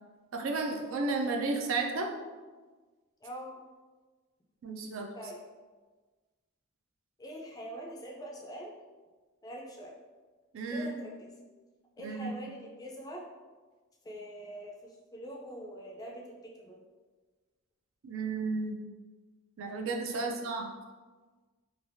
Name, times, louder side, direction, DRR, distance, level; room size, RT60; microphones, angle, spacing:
voice 1, 0.3-2.1 4.6-5.1 10.5-10.9 12.0-12.3 18.0-18.8 19.6-20.7, right 3 dB, 65° right, 2 dB, 0.4 m, -33 dB
voice 2, 3.2-3.5 5.1-5.4 7.2-8.8 9.4-10.0 10.7-11.3 12.0-13.2 14.0-16.8 20.1-20.5, right 1 dB, 15° left, -1 dB, 0.3 m, -44 dB
3.2 x 2.3 x 2.5 m, 1.3 s
head